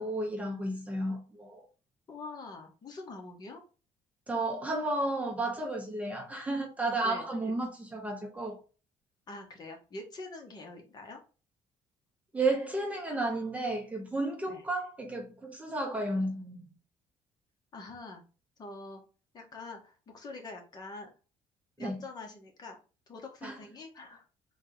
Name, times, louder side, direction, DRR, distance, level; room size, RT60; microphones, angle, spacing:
voice 1, 0.0-1.7 4.3-8.6 12.3-16.7 21.8-22.0 23.4-23.5, right 2 dB, 10° right, 0.8 m, -32 dB
voice 2, 2.1-3.6 7.0-7.2 9.3-11.2 14.5-14.6 17.7-18.2 18.6-19.0 19.3-21.1 21.8-22.8 23.1-24.2, left 2 dB, 35° left, 1.2 m, -45 dB
3.7 x 2.8 x 3.8 m
cardioid pair, 135°, 11 cm